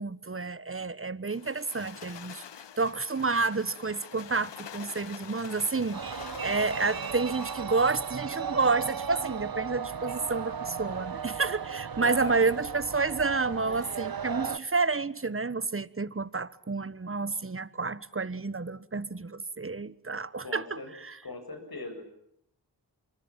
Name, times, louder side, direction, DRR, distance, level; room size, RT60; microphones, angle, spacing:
voice 1, 0.0-2.4 2.8-21.2, right 4 dB, 30° right, 1.4 m, -30 dB
sound 1, 1.3-7.8, left 9 dB, 85° left, 0.9 m, -46 dB
sound 2, 5.9-14.6, right 6 dB, 55° right, 1.2 m, -36 dB
voice 2, 12.0-12.5 20.4-20.9 21.2-22.0, left 3 dB, 60° left, 7.9 m, -39 dB
25.5 x 24.5 x 7.5 m
cardioid pair, 50°, 41 cm